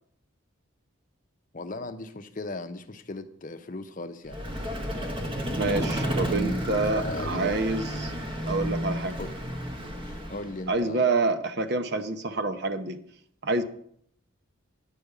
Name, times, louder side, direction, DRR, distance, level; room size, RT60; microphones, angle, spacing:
voice 1, 1.5-4.4 5.6-6.2 7.0-7.5 9.2-9.3 10.0-11.1, left 2 dB, 40° left, 0.7 m, -37 dB
Vehicle, 4.3-10.7, equal, 25° right, 1.2 m, -31 dB
voice 2, 5.5-8.1 8.5-9.2 10.7-13.0 13.4-13.6, right 3 dB, 50° right, 0.9 m, -27 dB
10.0 x 5.2 x 8.1 m
head